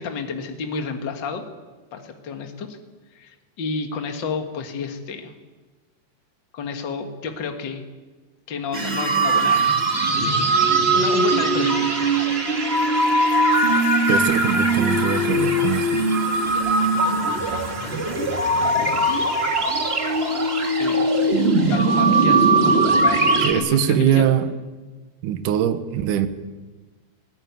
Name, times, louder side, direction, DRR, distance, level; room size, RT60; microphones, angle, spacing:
voice 1, 0.0-1.4 1.9-2.8 3.1-5.3 6.5-7.8 8.5-9.7 10.9-12.4 17.3-18.2 18.6-19.4 20.8-21.1 21.7-24.3, left 5 dB, 90° left, 5 dB, 1.0 m, -31 dB
sound 1, 8.7-23.5, right 2 dB, 45° right, 0.7 m, -20 dB
voice 2, 14.1-16.0 23.4-24.5 25.2-26.3, right 9 dB, 70° right, 10 dB, 2.0 m, -22 dB
20.5 x 17.5 x 9.5 m, 1.3 s
omnidirectional pair, 5.0 m